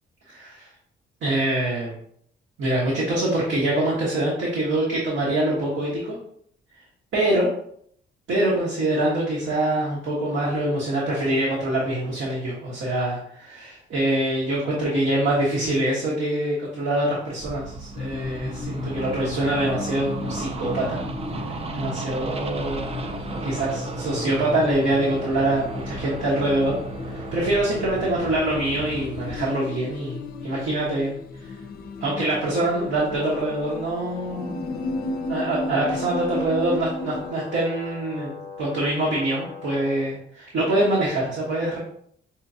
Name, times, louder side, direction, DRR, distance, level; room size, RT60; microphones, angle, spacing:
voice 1, 0.3-0.6 1.2-1.9 2.6-6.2 7.1-7.5 8.3-21.0 21.7-22.9 23.4-26.8 27.1-31.5 32.0-34.6 35.3-41.8, right 1 dB, 70° right, -5 dB, 1.2 m, -24 dB
sound 1, 17.4-29.4, right 3 dB, 30° right, 0.4 m, -34 dB
sound 2, 18.0-37.3, left 3 dB, 50° left, 0.4 m, -35 dB
Brass instrument, 33.1-40.1, left 5 dB, 20° left, 0.8 m, -39 dB
5.4 x 2.3 x 2.7 m, 0.66 s
cardioid pair, 90°, 20 cm